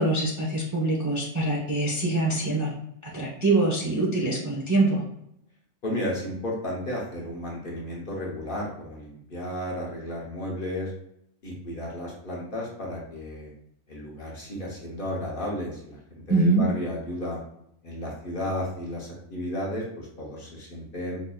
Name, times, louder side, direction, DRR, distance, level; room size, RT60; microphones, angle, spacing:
voice 1, 0.0-2.7 3.1-5.0 16.3-16.6, right 2 dB, 20° right, -4 dB, 0.5 m, -24 dB
voice 2, 5.8-10.9 11.4-13.5 13.9-17.4 17.8-21.2, left 1 dB, 45° left, -3 dB, 1.0 m, -33 dB
5.0 x 2.6 x 2.3 m, 0.75 s
omnidirectional pair, 1.3 m